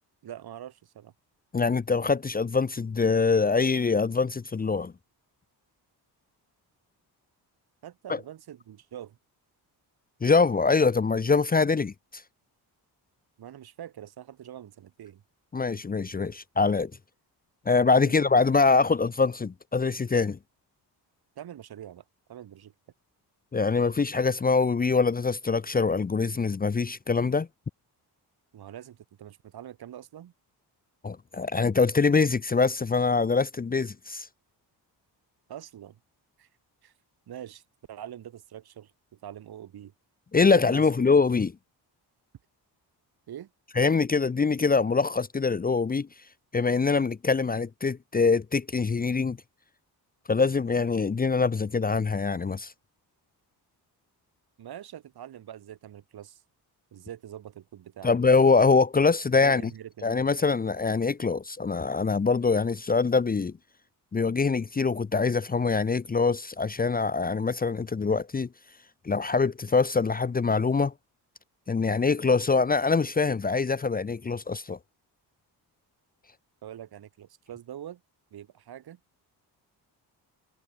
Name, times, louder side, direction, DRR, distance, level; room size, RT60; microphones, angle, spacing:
voice 1, 0.2-1.1 7.8-9.2 13.4-15.2 17.9-18.1 21.4-22.0 22.3-22.7 28.5-30.3 35.5-36.0 36.4-36.5 36.8-36.9 37.3-37.6 37.9-38.9 39.2-39.9 40.4-40.9 43.3-43.5 54.6-56.4 56.9-58.2 59.3-60.1 76.6-78.0 78.3-79.0, right 10 dB, 65° right, 4.6 m, -44 dB
voice 2, 1.5-4.9 8.1-8.2 10.2-12.2 15.5-16.9 17.7-20.4 23.5-27.5 31.0-34.3 40.3-41.5 43.8-46.1 46.5-49.4 50.3-52.7 58.0-59.6 60.0-63.5 64.1-68.5 69.0-70.9 71.7-74.8, left 4 dB, 20° left, 0.9 m, -24 dB
cardioid pair, 145°, 40 cm